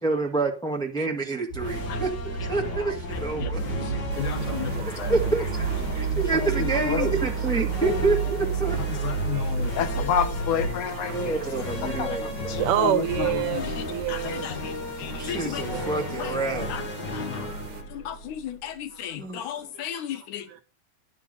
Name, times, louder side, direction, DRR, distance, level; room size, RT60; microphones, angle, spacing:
voice 1, 0.0-2.1 2.5-3.8 4.3-4.4 4.8-9.4 11.1-12.6 15.2-16.7 19.2-19.4, right 3 dB, 5° left, 0.3 m, -28 dB
sound 1, 1.5-10.7, right 7 dB, 85° left, 4.0 m, -30 dB
sound 2, 1.5-19.0, left 1 dB, 45° left, 1.5 m, -34 dB
voice 2, 3.4-3.7 4.2-5.1 6.1-7.1 7.8-7.9 9.0-11.4 11.8-13.7 14.1-14.7 15.0-15.8 16.2-16.3 16.7-16.8 17.1-17.5 17.9-20.5, left 9 dB, 70° left, 2.3 m, -31 dB
sound 3, 4.1-17.8, right 6 dB, 45° right, 2.0 m, -43 dB
voice 3, 9.3-9.6 10.9-11.2 12.6-14.5 15.7-16.1 18.9-19.5 19.7-19.8 20.1-20.6, right 13 dB, 80° right, 2.2 m, -29 dB
10.5 x 7.3 x 5.4 m
omnidirectional pair, 3.8 m